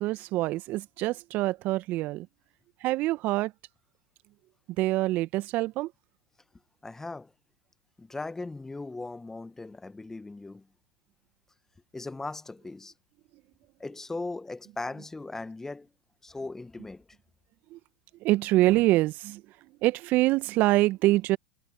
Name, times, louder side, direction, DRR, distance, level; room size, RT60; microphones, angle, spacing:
voice 1, 0.0-2.3 2.8-3.5 4.8-5.9 17.7-17.8 18.2-19.4 19.8-21.4, right 18 dB, 45° right, 1.1 m, -25 dB
voice 2, 6.8-7.3 8.0-10.7 11.9-12.9 13.8-15.9 16.2-17.1, left 3 dB, 10° left, 1.3 m, -38 dB
hypercardioid pair, 90°, 4 cm